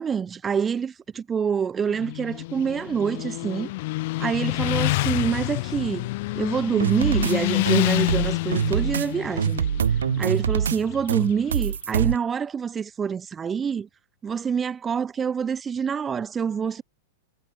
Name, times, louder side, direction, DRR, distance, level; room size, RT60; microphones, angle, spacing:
voice 1, 0.0-3.7 4.2-6.1 6.3-9.7 10.2-13.9 14.2-16.8, right 7 dB, 20° right, 1.1 m, -26 dB
Motorcycle, 1.9-11.7, left 21 dB, 55° left, 0.4 m, -28 dB
sound 1, 6.8-7.3 7.7-9.1 9.4-10.8 11.1-12.2, right 8 dB, 80° right, 1.2 m, -24 dB
hypercardioid pair, 105°, 0 cm